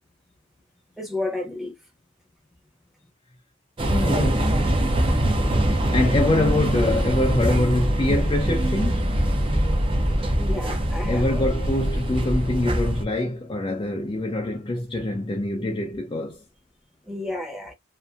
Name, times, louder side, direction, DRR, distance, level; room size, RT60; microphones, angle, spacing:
voice 1, 1.0-1.7 10.4-11.5 17.1-17.7, left 2 dB, ahead, 0.9 m, -31 dB
sound 1, 3.8-13.0, right 1 dB, 25° right, 0.6 m, -23 dB
voice 2, 3.9-4.5 5.7-9.1 11.1-16.4, left 1 dB, 25° left, 0.4 m, -24 dB
2.6 x 2.5 x 2.3 m
head